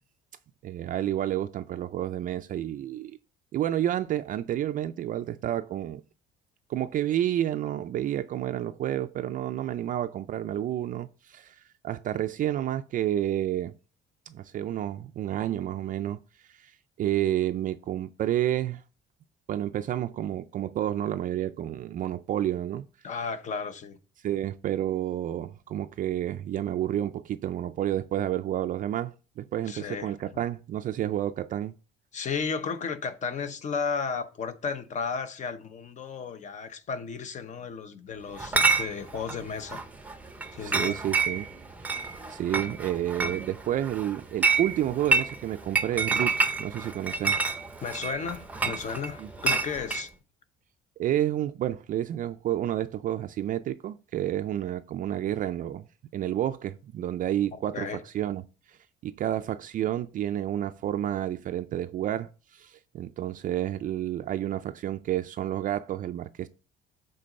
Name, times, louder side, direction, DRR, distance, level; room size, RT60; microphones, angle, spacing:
voice 1, 0.6-3.2 3.5-6.0 6.7-13.8 14.3-18.8 19.5-22.9 24.2-31.7 40.6-41.5 41.8-47.4 49.2-49.3 51.0-55.8 56.1-58.4 58.7-58.8 59.0-66.5, right 12 dB, 45° right, 0.4 m, -30 dB
voice 2, 23.0-24.0 29.7-30.1 32.1-39.8 40.5-41.0 47.8-50.1 57.7-58.0, left 5 dB, 40° left, 0.8 m, -34 dB
Chatter / Chink clink, 38.4-50.1, right 4 dB, 10° right, 0.7 m, -29 dB
7.6 x 3.8 x 5.3 m
cardioid pair, 145°, 19 cm